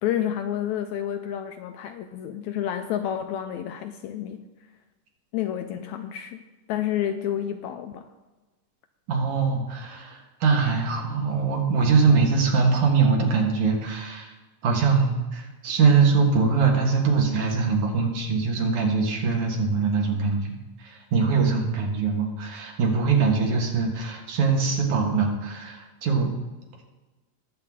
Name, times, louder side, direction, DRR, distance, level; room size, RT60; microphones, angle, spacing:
voice 1, 0.0-4.4 5.3-6.4 6.7-8.1, left 10 dB, 80° left, 7 dB, 1.7 m, -29 dB
voice 2, 9.1-14.3 14.6-26.3, right 5 dB, 70° right, 1 dB, 3.0 m, -22 dB
20.0 x 7.8 x 3.7 m, 1.2 s
omnidirectional pair, 3.8 m